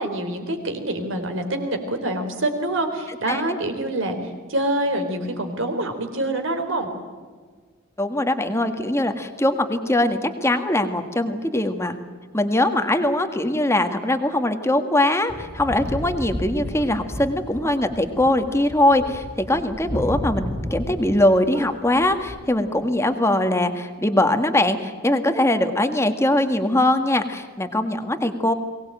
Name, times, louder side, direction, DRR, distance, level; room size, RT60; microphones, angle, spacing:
voice 1, 0.0-6.9, right 1 dB, 60° right, 5 dB, 3.9 m, -26 dB
voice 2, 8.0-11.9 12.3-28.5, left 1 dB, 15° left, 7 dB, 1.7 m, -21 dB
sound 1, 15.3-21.2 21.5-22.4, equal, 20° right, 3.3 m, -33 dB
23.0 x 19.0 x 9.0 m, 1.6 s
head